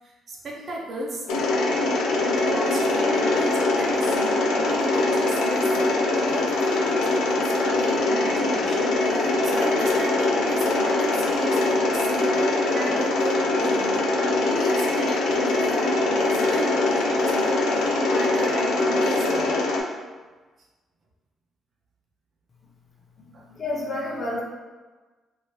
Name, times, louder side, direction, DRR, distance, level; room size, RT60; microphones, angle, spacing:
voice 1, 0.0-1.3 2.4-19.5 23.3-23.4, right 2 dB, 50° right, -2 dB, 0.7 m, -35 dB
Mechanisms, 1.3-19.8, left 2 dB, 90° left, 0.5 m, -22 dB
voice 2, 23.5-24.4, left 2 dB, 45° left, -3 dB, 0.8 m, -29 dB
3.0 x 2.7 x 3.1 m, 1.3 s
cardioid pair, 90°, 0 cm